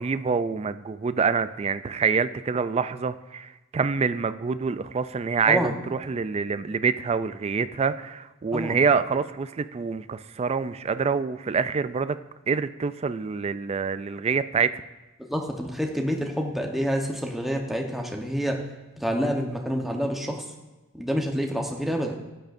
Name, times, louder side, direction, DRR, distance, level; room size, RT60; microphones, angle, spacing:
voice 1, 0.0-12.2 12.5-14.7, right 5 dB, 30° right, 13 dB, 0.3 m, -26 dB
voice 2, 15.3-18.6 19.0-20.4 20.9-22.1, equal, ahead, 1 dB, 1.0 m, -27 dB
13.5 x 9.0 x 2.6 m, 1.1 s
head